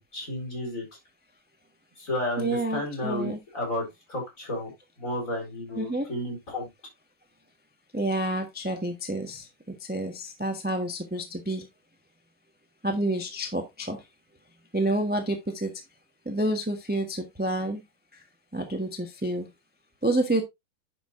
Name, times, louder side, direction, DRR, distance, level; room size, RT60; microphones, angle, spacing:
voice 1, 0.1-0.9 2.0-4.7 5.0-6.7, left 1 dB, 40° left, 4.7 m, -32 dB
voice 2, 2.4-3.4 5.8-6.1 7.9-11.7 12.8-14.0 14.7-15.8 16.2-17.8 18.1-18.2 18.5-19.5 20.0-20.4, right 1 dB, 5° right, 1.0 m, -29 dB
10.5 x 6.9 x 2.6 m
omnidirectional pair, 2.2 m